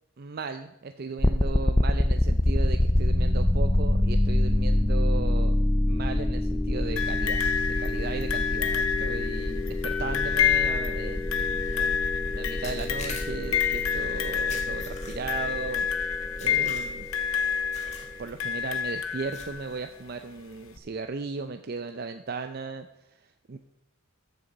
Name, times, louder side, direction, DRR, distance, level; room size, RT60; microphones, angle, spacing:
voice 1, 0.2-5.6 5.9-12.0 12.3-17.1 18.2-22.9 23.1-23.6, right 4 dB, 45° right, 8 dB, 0.5 m, -36 dB
sound 1, 1.2-18.1, left 1 dB, 10° left, 0.4 m, -26 dB
sound 2, 7.0-19.8 20.8-20.9, left 8 dB, 80° left, 1.0 m, -29 dB
sound 3, 11.6-11.9 12.6-13.6 14.5-15.4 16.4-17.2 17.7-18.1 18.4-18.7 19.3-19.8, left 4 dB, 35° left, 1.8 m, -43 dB
14.0 x 7.0 x 5.2 m, 0.91 s
head